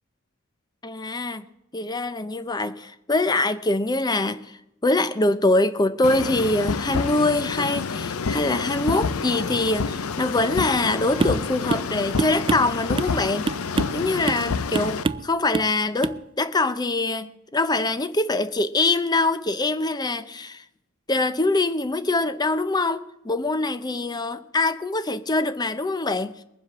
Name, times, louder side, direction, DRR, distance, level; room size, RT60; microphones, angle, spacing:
voice 1, 0.8-1.4 1.7-13.5 13.9-20.6 21.1-26.3, left 2 dB, 20° left, 12 dB, 0.6 m, -24 dB
sound 1, 6.0-15.0, left 5 dB, 90° left, 0.6 m, -28 dB
sound 2, 11.2-11.4 11.7-11.9 12.2-13.2 13.5-14.0 14.3-14.5 14.7-15.3 15.5-15.7 16.0-16.2, right 3 dB, 25° right, 0.4 m, -26 dB
21.0 x 7.7 x 6.0 m, 0.86 s
head